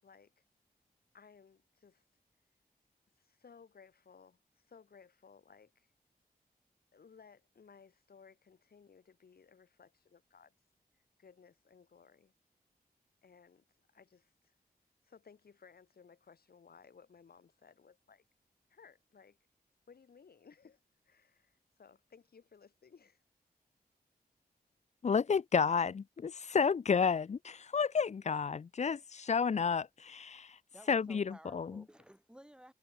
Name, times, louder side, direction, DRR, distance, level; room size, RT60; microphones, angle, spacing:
voice 1, 0.0-0.4 1.1-2.0 3.2-5.9 6.9-10.5 10.9-12.3 13.2-14.5 15.0-18.2 18.7-19.4 19.9-23.2, left 6 dB, 75° left, 5.0 m, -60 dB
voice 2, 25.0-30.6 30.9-31.8, left 6 dB, 45° left, 0.6 m, -31 dB
voice 3, 30.7-32.7, equal, 5° right, 7.1 m, -56 dB
wide cardioid pair, 140°, 16 cm